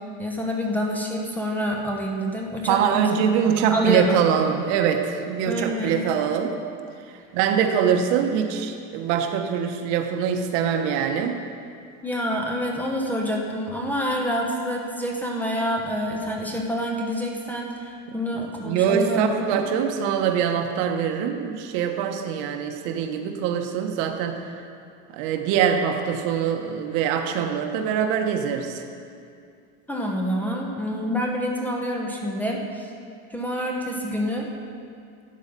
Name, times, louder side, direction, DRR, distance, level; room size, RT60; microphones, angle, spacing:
voice 1, 0.2-3.2 3.7-4.2 5.5-6.0 12.0-19.6 29.9-32.9 33.3-34.5, equal, 5° left, -1 dB, 0.8 m, -27 dB
voice 2, 2.7-6.6 7.3-11.4 18.6-24.5 25.1-28.8, right 8 dB, 70° right, 5 dB, 1.2 m, -23 dB
13.0 x 8.5 x 5.2 m, 2.4 s
cardioid pair, 165°, 36 cm